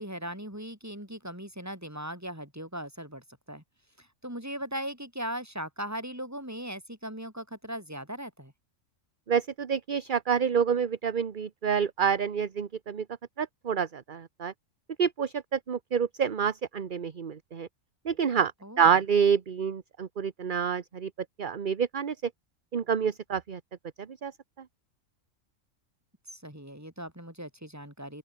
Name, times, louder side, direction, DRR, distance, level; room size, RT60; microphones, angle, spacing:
voice 1, 0.0-3.6 4.0-8.5 18.6-19.0 26.3-28.2, equal, 10° right, 5.5 m, -39 dB
voice 2, 9.3-13.0 13.4-14.5 15.0-17.7 18.0-18.5 18.8-21.1 21.4-22.1 22.7-23.6 24.0-24.3, right 7 dB, 40° right, 1.1 m, -27 dB
open air
omnidirectional pair, 1.4 m